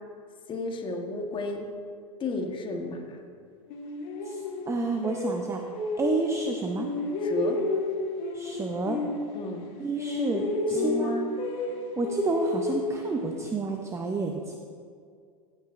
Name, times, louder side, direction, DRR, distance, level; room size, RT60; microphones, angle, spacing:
voice 1, 0.5-1.7 2.2-3.2 7.2-7.6 9.3-9.6 10.7-11.3, left 2 dB, 25° left, 3 dB, 1.2 m, -32 dB
sound 1, 3.7-6.5 6.8-9.7 10.0-13.5, left 2 dB, 55° left, 1.3 m, -31 dB
voice 2, 4.3-5.6 6.0-6.9 8.3-9.0 9.8-11.1 12.0-14.5, right 3 dB, 15° right, 3 dB, 0.6 m, -30 dB
15.0 x 8.8 x 2.5 m, 2.2 s
hypercardioid pair, 110°, 19 cm